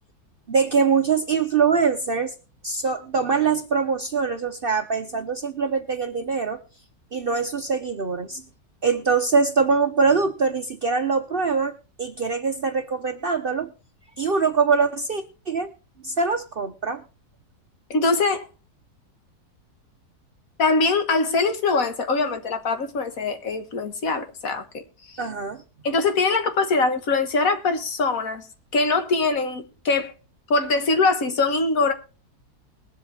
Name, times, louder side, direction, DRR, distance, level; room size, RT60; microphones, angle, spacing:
voice 1, 0.5-2.3 2.6-6.6 7.1-8.4 8.8-13.7 14.2-15.7 16.0-17.0 25.2-25.6, right 5 dB, 45° right, 0.8 m, -23 dB
voice 2, 17.9-18.5 20.6-24.8 25.1-25.3 25.8-28.4 28.7-30.1 30.5-31.9, left 3 dB, 60° left, 1.7 m, -22 dB
21.0 x 7.7 x 3.3 m
omnidirectional pair, 1.7 m